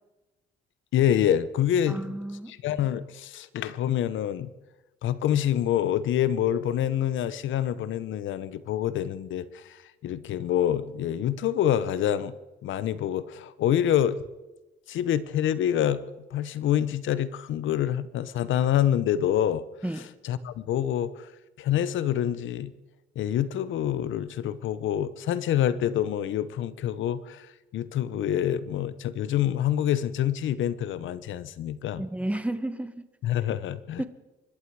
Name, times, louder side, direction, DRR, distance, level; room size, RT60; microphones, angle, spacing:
voice 1, 0.9-2.0 2.5-4.5 5.0-9.8 10.0-12.3 12.6-14.2 14.9-16.0 16.3-19.6 20.2-21.3 21.6-22.7 23.2-27.5 27.7-32.0 33.2-34.0, left 10 dB, 75° left, 16 dB, 0.9 m, -26 dB
voice 2, 1.9-2.5 19.8-20.1 32.0-33.0 34.0-34.1, right 1 dB, 5° right, 12 dB, 1.2 m, -32 dB
25.0 x 11.5 x 4.8 m, 1.1 s
cardioid pair, 90°, 20 cm